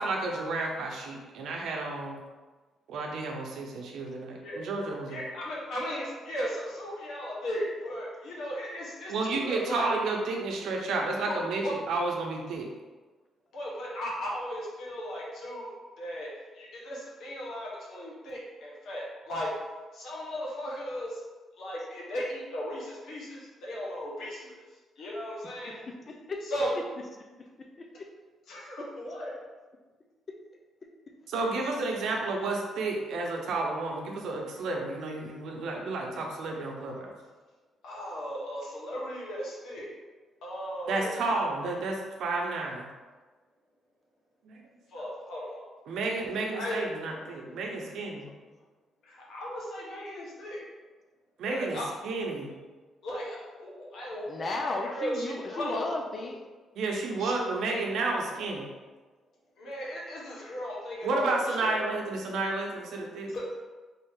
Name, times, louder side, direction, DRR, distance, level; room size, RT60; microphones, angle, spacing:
voice 1, 0.0-2.2 2.9-5.2 9.1-12.7 31.3-37.1 40.9-42.9 44.5-44.6 45.9-48.3 51.4-51.8 52.0-52.6 56.8-58.7 61.0-63.3, right 3 dB, 75° right, 0 dB, 0.7 m, -31 dB
voice 2, 5.1-9.9 11.3-11.4 11.6-11.7 13.5-19.5 19.9-21.2 21.6-24.6 25.0-25.8 26.4-26.8 28.5-29.3 37.8-39.9 40.4-41.2 44.9-45.6 46.5-46.8 49.0-50.6 51.4-51.9 53.0-55.9 57.2-57.3 59.6-61.8 63.3-63.4, equal, 70° left, -4 dB, 1.3 m, -36 dB
voice 3, 26.1-26.4 27.2-27.3 27.8-28.1 47.2-48.4 54.3-56.4, left 2 dB, 40° left, 3 dB, 0.6 m, -36 dB
3.9 x 2.7 x 3.7 m, 1.3 s
cardioid pair, 90°, 0 cm